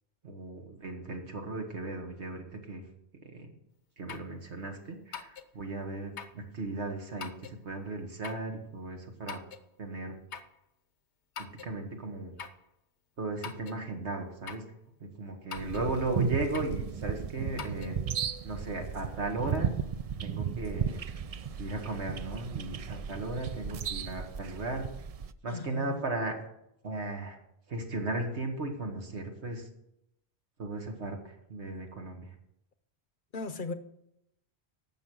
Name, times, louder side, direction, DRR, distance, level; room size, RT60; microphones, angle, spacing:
voice 1, 0.2-2.8 3.2-3.5 4.0-9.4 9.8-10.1 11.4-12.3 13.2-14.6 15.2-18.0 18.4-19.7 20.2-21.1 21.6-24.9 25.4-26.4 26.8-27.4 27.7-29.7 30.6-32.3, right 2 dB, 80° right, 2.0 m, -36 dB
sound 1, 4.1-4.3 5.1-5.5 6.2-6.4 7.2-7.6 8.2-8.5 9.3-9.7 10.3-10.6 11.4-11.7 12.4-12.6 13.4-13.8 14.5-14.7 15.5-15.9 16.5-16.8 17.6-18.0, left 7 dB, 80° left, 1.1 m, -42 dB
sound 2, 15.5-25.3, right 7 dB, 60° right, 0.4 m, -35 dB
voice 2, 25.5-26.0 33.3-33.7, left 3 dB, 55° left, 0.9 m, -37 dB
11.5 x 7.3 x 6.3 m
omnidirectional pair, 1.1 m